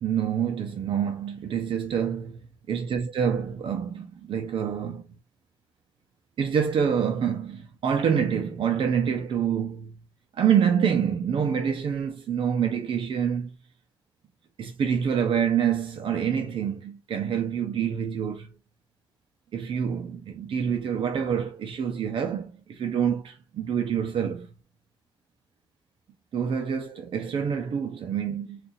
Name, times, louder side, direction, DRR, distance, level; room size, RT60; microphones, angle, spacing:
voice 1, 0.0-5.1 6.4-10.0 10.3-13.5 14.6-18.6 19.5-24.5 26.3-28.6, right 8 dB, 85° right, 0.8 m, -27 dB
3.9 x 2.7 x 2.7 m
wide cardioid pair, 150°, 9 cm